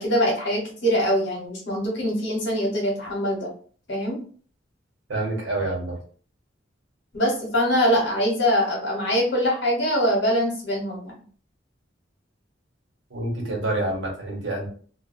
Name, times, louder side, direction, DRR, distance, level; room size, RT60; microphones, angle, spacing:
voice 1, 0.0-3.5 3.9-4.2 7.1-11.1, equal, 65° left, -2 dB, 1.1 m, -23 dB
voice 2, 5.1-6.0 13.1-14.7, right 2 dB, 80° right, -1 dB, 1.0 m, -27 dB
2.3 x 2.2 x 2.5 m, 0.44 s
head